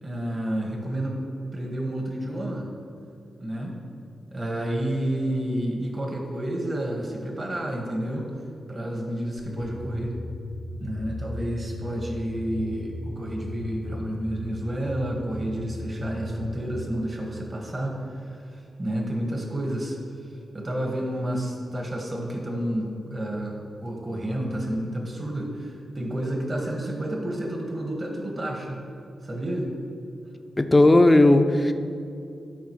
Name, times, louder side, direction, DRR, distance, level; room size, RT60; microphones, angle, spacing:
voice 1, 0.0-1.2 1.5-2.7 3.4-3.8 4.3-8.3 8.7-10.1 10.8-20.0 20.5-28.8 29.2-29.7, right 1 dB, 40° right, 0 dB, 1.6 m, -30 dB
sound 1, 9.4-16.8, left 2 dB, 85° left, 0.9 m, -37 dB
voice 2, 30.6-31.7, left 2 dB, 20° left, 7 dB, 0.5 m, -16 dB
12.5 x 5.1 x 3.2 m, 2.7 s
cardioid pair, 55°, 0 cm